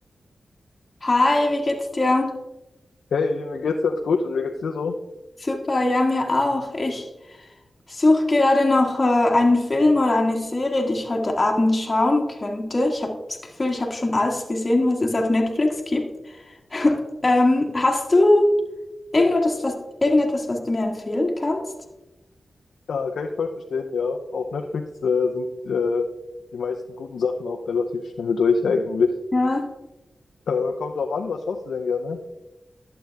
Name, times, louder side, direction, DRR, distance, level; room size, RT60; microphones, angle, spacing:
voice 1, 1.0-2.4 5.4-7.1 7.9-16.1 16.7-18.5 19.1-19.8 20.0-21.6 29.3-29.7, left 2 dB, 35° left, 0 dB, 1.6 m, -21 dB
voice 2, 3.1-4.9 22.9-26.1 26.5-29.1 30.5-32.2, left 5 dB, 90° left, 3 dB, 0.6 m, -25 dB
11.5 x 7.7 x 3.4 m, 1.0 s
cardioid pair, 60°, 0 cm